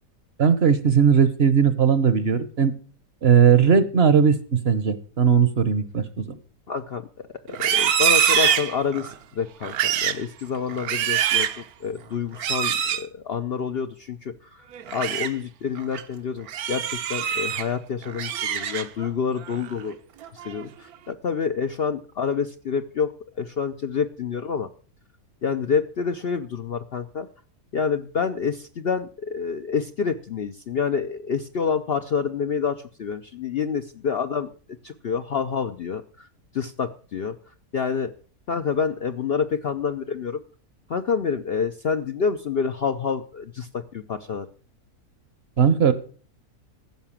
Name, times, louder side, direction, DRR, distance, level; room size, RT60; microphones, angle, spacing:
voice 1, 0.4-2.7 3.2-6.4 45.6-45.9, right 7 dB, 50° right, 13 dB, 1.0 m, -18 dB
voice 2, 6.7-14.6 14.9-20.0 20.3-23.1 23.4-24.7 25.4-27.3 27.7-34.5 34.8-36.3 36.5-37.4 37.7-38.1 38.5-40.4 40.9-44.5, left 6 dB, 55° left, 7 dB, 0.7 m, -28 dB
Livestock farm animals working animals, 7.5-9.2 9.6-10.2 10.7-11.6 12.4-13.0 14.7-15.3 15.8-16.0 16.5-17.6 18.0-19.1 19.5-19.8 20.2-20.6, right 9 dB, 75° right, 1.3 m, -24 dB
14.5 x 5.9 x 7.3 m, 0.41 s
omnidirectional pair, 1.6 m